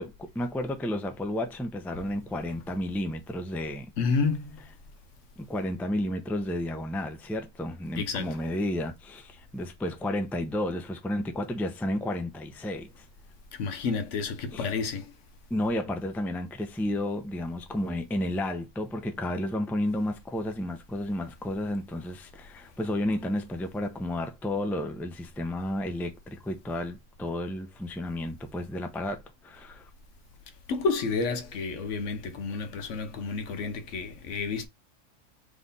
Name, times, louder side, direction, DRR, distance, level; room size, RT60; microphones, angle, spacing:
voice 1, 0.0-3.9 5.5-13.0 14.5-14.7 15.5-29.9, left 1 dB, ahead, 0.4 m, -32 dB
voice 2, 4.0-4.6 8.0-8.4 13.5-15.1 30.7-34.7, left 4 dB, 70° left, 1.0 m, -30 dB
3.8 x 3.1 x 4.0 m
omnidirectional pair, 1.4 m